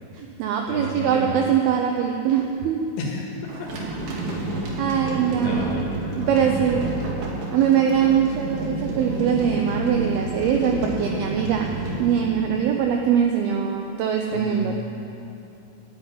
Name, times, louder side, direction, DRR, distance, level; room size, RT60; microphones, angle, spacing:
voice 1, 0.2-2.9 4.8-5.8 6.2-6.8 7.5-11.7 12.0-14.7, right 8 dB, 85° right, 2 dB, 2.2 m, -22 dB
voice 2, 0.7-1.3 3.0-3.7 4.5-4.7 5.1-6.6 14.3-14.7, left 1 dB, 75° left, -1 dB, 3.9 m, -33 dB
sound 1, 3.5-12.9, right 2 dB, 55° right, 3.1 m, -30 dB
11.0 x 8.1 x 9.3 m, 2.7 s
omnidirectional pair, 5.2 m